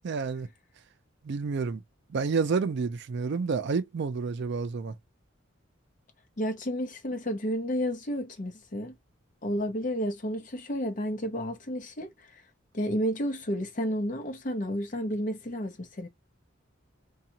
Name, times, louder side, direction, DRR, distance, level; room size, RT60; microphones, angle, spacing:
voice 1, 0.0-0.5 1.2-1.8 2.1-4.9, right 5 dB, 60° right, 0.4 m, -29 dB
voice 2, 6.4-8.9 9.4-12.1 12.7-16.1, equal, 45° left, 0.8 m, -31 dB
2.8 x 2.3 x 2.7 m
head